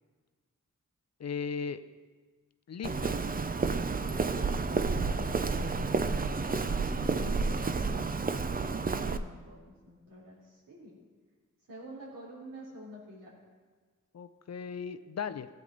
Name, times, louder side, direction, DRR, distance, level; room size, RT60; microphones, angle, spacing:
voice 1, 1.2-1.8 2.7-3.2 14.1-15.5, left 6 dB, 50° left, 12 dB, 0.6 m, -37 dB
Walk footsteps, 2.8-9.2, right 4 dB, 25° right, 0.6 m, -30 dB
voice 2, 5.1-6.3 6.7-7.9 9.0-9.6 9.9-10.9 11.7-13.3, equal, 80° right, -5 dB, 3.5 m, -48 dB
15.0 x 8.1 x 4.0 m, 1.4 s
cardioid pair, 50°, 33 cm